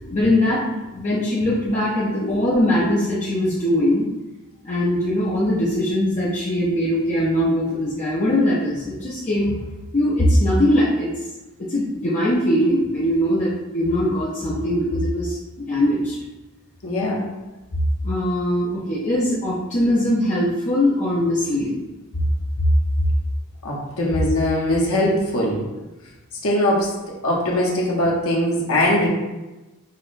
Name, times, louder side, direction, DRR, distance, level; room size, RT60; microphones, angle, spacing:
voice 1, 0.1-4.1 4.6-9.5 9.9-11.1 11.7-15.4 15.7-16.2 18.0-21.8 22.2-22.3, left 1 dB, 35° left, -7 dB, 0.5 m, -21 dB
voice 2, 16.8-17.3 23.6-25.6 26.4-29.1, left 1 dB, 75° left, -3 dB, 0.9 m, -21 dB
5.6 x 2.1 x 2.5 m, 1.1 s
head